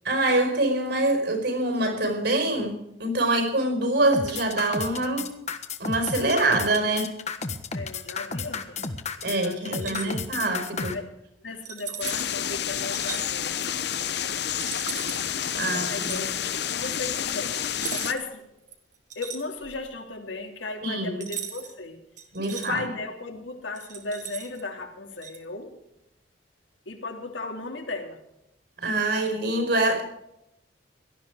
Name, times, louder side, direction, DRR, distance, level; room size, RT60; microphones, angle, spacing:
voice 1, 0.0-5.3 5.8-7.1 9.2-11.0 15.5-16.2 20.8-21.2 22.3-22.8 28.8-30.0, right 2 dB, 60° right, 6 dB, 4.9 m, -25 dB
sound 1, 4.1-10.9, left 4 dB, 35° left, 1.4 m, -32 dB
voice 2, 7.7-8.8 9.3-10.3 10.9-11.1 11.4-13.8 15.5-18.5 19.1-22.0 22.5-25.7 26.8-28.2, left 3 dB, 80° left, 4 dB, 3.1 m, -36 dB
sound 2, 9.7-10.2 11.6-12.4 12.9-13.3 14.6-15.2 15.9-16.3 17.7-18.3 18.7-19.9 21.2-21.7 22.2-22.7 23.7-24.6 25.2-25.4, right 8 dB, 40° right, 2.0 m, -38 dB
sound 3, 12.0-18.1, left 9 dB, 60° left, 0.9 m, -29 dB
18.0 x 13.0 x 4.9 m, 0.82 s
head